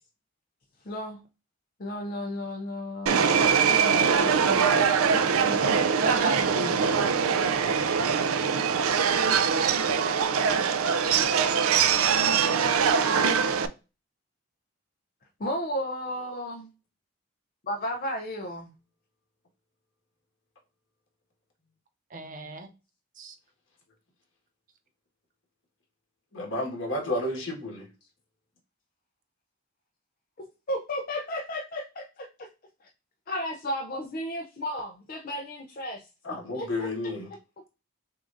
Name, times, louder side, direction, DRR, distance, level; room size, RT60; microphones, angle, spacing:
voice 1, 0.8-1.2 1.8-5.9 12.8-13.0 15.4-16.7 17.6-18.7 30.4-32.5 32.8-32.9 33.3-36.9, equal, 40° left, 2 dB, 0.5 m, -34 dB
Subway metro underground, 3.1-13.7, right 6 dB, 90° right, 0.4 m, -23 dB
voice 2, 5.9-6.7 9.5-10.0 22.1-22.7 23.2-23.4, right 3 dB, 40° right, 6 dB, 0.5 m, -34 dB
voice 3, 26.3-27.9 36.2-37.3, left 1 dB, 60° left, -1 dB, 1.6 m, -31 dB
6.3 x 2.5 x 2.5 m, 0.30 s
head